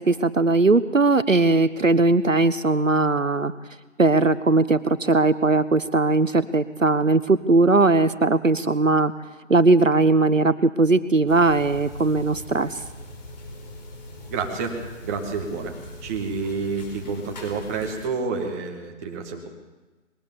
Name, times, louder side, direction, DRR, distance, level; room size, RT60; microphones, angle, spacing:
voice 1, 0.0-3.5 4.0-9.1 9.5-12.7, right 3 dB, 80° right, 14 dB, 1.3 m, -19 dB
sound 1, 11.3-18.1, left 1 dB, 35° left, 4.7 m, -41 dB
voice 2, 14.3-15.8 16.0-19.5, right 4 dB, 10° right, 2 dB, 1.9 m, -29 dB
21.5 x 17.5 x 7.2 m, 1.2 s
figure-of-eight pair, 150°, 38 cm